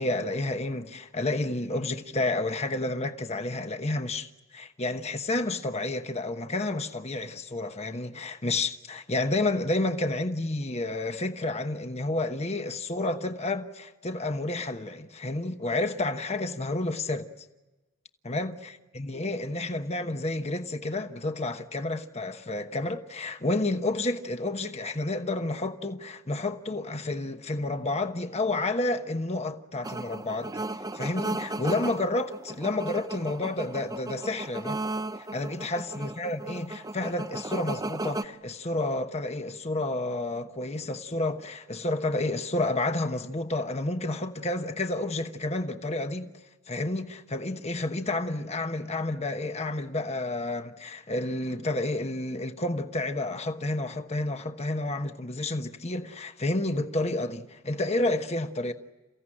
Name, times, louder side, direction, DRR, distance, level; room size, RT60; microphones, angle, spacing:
voice 1, 0.0-17.3 18.2-30.6 30.9-34.8 35.2-46.3 46.7-58.7, left 2 dB, 30° left, 1.1 m, -30 dB
sound 1, 29.8-38.2, right 2 dB, 20° right, 0.8 m, -35 dB
29.0 x 16.0 x 10.0 m
head